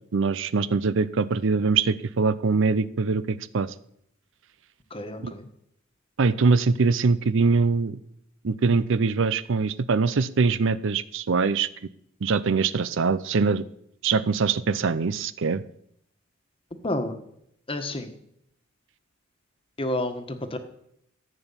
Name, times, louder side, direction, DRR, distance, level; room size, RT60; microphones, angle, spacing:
voice 1, 0.1-3.7 5.2-5.3 6.2-8.0 8.4-11.7 12.2-13.6 14.0-15.6, right 4 dB, 65° right, 16 dB, 0.6 m, -23 dB
voice 2, 4.9-5.5 16.8-17.1 17.7-18.1 19.8-20.6, left 1 dB, 25° left, 7 dB, 1.4 m, -30 dB
14.5 x 9.0 x 7.2 m, 0.73 s
head